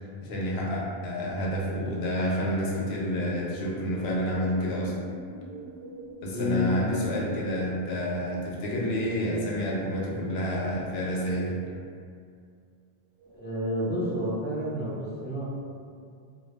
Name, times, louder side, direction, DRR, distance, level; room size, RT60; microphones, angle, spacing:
voice 1, 0.2-4.9 6.2-11.5, equal, 80° left, -4 dB, 0.8 m, -29 dB
sound 1, 2.5-7.5, right 2 dB, 70° right, 0.7 m, -45 dB
sound 2, 2.8-3.7 5.2-6.2 6.6-7.7 9.1-10.2 10.6-11.6 13.2-14.2, right 2 dB, 35° right, 0.7 m, -47 dB
voice 2, 6.3-6.7 13.3-15.4, left 1 dB, 15° left, -10 dB, 0.5 m, -29 dB
2.2 x 2.0 x 3.2 m, 2.3 s
omnidirectional pair, 1.0 m